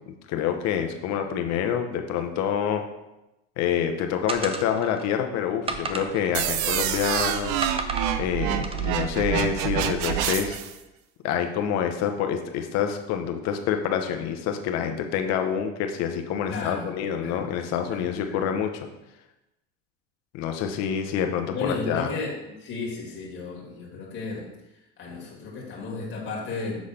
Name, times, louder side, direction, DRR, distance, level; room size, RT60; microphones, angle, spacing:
voice 1, 0.1-2.8 3.6-7.5 8.2-10.6 11.2-18.7 20.3-22.1, left 8 dB, 55° left, 6 dB, 1.0 m, -27 dB
sound 1, 4.3-5.1 5.7-7.1 7.6-8.2 8.6-9.1, right 4 dB, 20° right, 0.6 m, -34 dB
sound 2, 6.3-10.7, right 10 dB, 65° right, 0.7 m, -27 dB
voice 2, 16.5-17.4 17.8-18.5 21.5-26.8, left 3 dB, 35° left, -3 dB, 2.1 m, -34 dB
7.3 x 4.0 x 5.0 m, 0.95 s
supercardioid pair, 110°, 31 cm